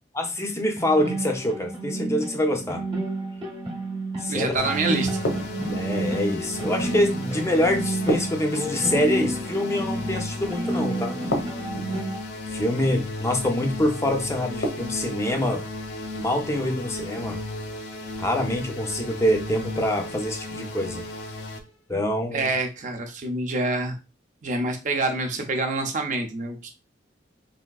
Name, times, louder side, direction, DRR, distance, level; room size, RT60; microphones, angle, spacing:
voice 1, 0.2-2.8 4.2-4.6 5.7-11.2 12.5-15.6 16.2-17.4 18.2-21.0 21.9-22.5, left 1 dB, 15° left, 4 dB, 0.5 m, -25 dB
sound 1, 0.8-12.2, right 2 dB, 25° right, 0.9 m, -30 dB
voice 2, 4.3-5.2 22.3-24.0 24.4-26.7, right 2 dB, 40° right, 4 dB, 0.5 m, -26 dB
sound 2, 4.6-21.6, left 2 dB, 65° left, 0.5 m, -35 dB
sound 3, 5.2-6.0 8.1-9.1 11.3-12.1 14.6-15.3, equal, 85° left, 0.8 m, -29 dB
3.4 x 2.5 x 2.3 m, 0.29 s
head